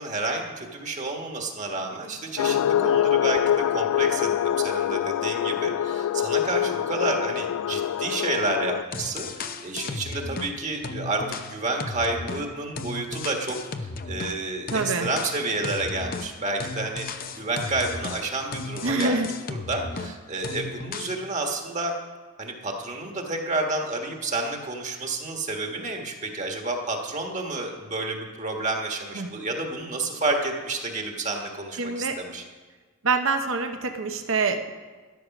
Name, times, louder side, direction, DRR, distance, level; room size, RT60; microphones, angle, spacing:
voice 1, 0.0-17.1 17.4-19.2 19.5-21.9 22.4-32.4, right 2 dB, 35° right, 2 dB, 1.5 m, -30 dB
sound 1, 2.4-8.8, left 10 dB, 90° left, 0.3 m, -25 dB
sound 2, 8.9-10.5 10.8-14.4 14.7-20.2 20.4-21.2, left 3 dB, 40° left, 0.7 m, -35 dB
voice 2, 14.7-15.1 18.8-19.3 29.2-29.3 31.8-32.2 33.0-34.7, right 4 dB, 60° right, 6 dB, 0.8 m, -25 dB
13.0 x 11.0 x 6.0 m, 1.4 s
head